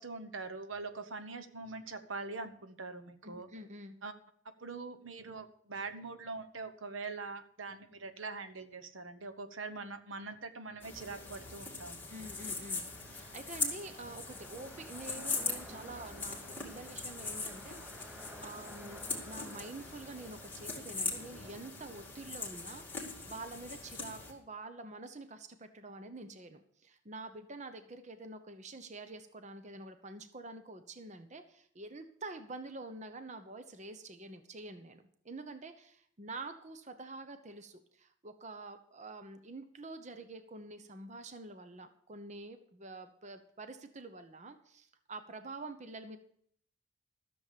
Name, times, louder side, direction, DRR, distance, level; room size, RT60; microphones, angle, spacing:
voice 1, 0.0-3.5 4.0-4.1 4.6-12.0, right 3 dB, 80° right, 10 dB, 1.0 m, -43 dB
voice 2, 3.2-3.9 12.1-16.4 16.6-22.8 23.2-46.2, right 2 dB, 35° right, 9 dB, 0.8 m, -47 dB
sound 1, 10.8-24.3, left 3 dB, 10° left, 2.3 m, -41 dB
sound 2, 12.1-23.5, equal, 5° right, 0.9 m, -55 dB
13.5 x 7.1 x 6.8 m, 0.65 s
head